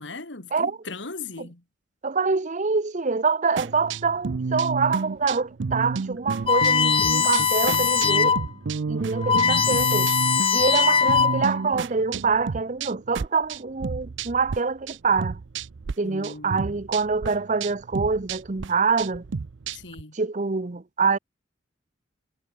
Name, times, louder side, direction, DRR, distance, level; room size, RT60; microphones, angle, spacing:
voice 1, 0.0-1.6 10.7-11.4 16.0-16.8 19.7-20.2, left 3 dB, 75° left, 2.5 m, -39 dB
voice 2, 2.0-8.4 8.9-10.1 10.5-15.4 16.0-19.2 20.1-21.2, right 4 dB, 40° right, 0.8 m, -25 dB
sound 1, 3.6-14.6 14.9-15.9 16.2-20.0, right 4 dB, 80° right, 0.5 m, -31 dB
sound 2, 6.5-8.5 8.9-9.0 9.2-11.6, left 6 dB, 30° left, 0.9 m, -21 dB
head